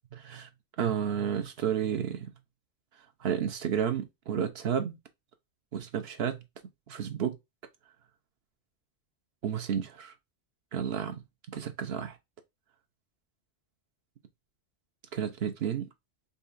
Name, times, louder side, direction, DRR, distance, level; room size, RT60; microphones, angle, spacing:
voice 1, 0.1-0.5 0.8-2.3 3.2-5.0 5.7-6.4 6.9-7.4 9.4-10.1 10.7-12.2 15.1-15.9, right 8 dB, 65° right, 1.0 m, -31 dB
5.3 x 2.4 x 2.6 m
omnidirectional pair, 1.2 m